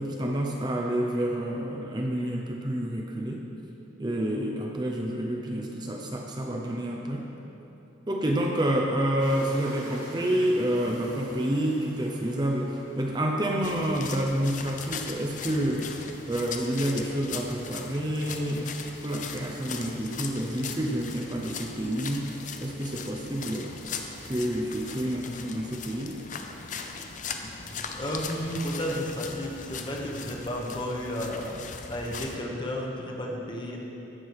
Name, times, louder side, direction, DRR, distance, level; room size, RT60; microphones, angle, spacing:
voice 1, 0.0-3.5 4.0-7.3 8.1-16.0 16.3-18.7 19.0-23.8 24.2-26.2, right 1 dB, 20° right, 0 dB, 0.7 m, -29 dB
sound 1, 9.2-21.9, right 1 dB, 45° right, 1.7 m, -49 dB
sound 2, 13.6-32.4, left 5 dB, 40° left, 0.6 m, -39 dB
voice 2, 27.9-33.8, equal, 25° left, -1 dB, 1.1 m, -32 dB
15.0 x 6.0 x 4.8 m, 3.0 s
head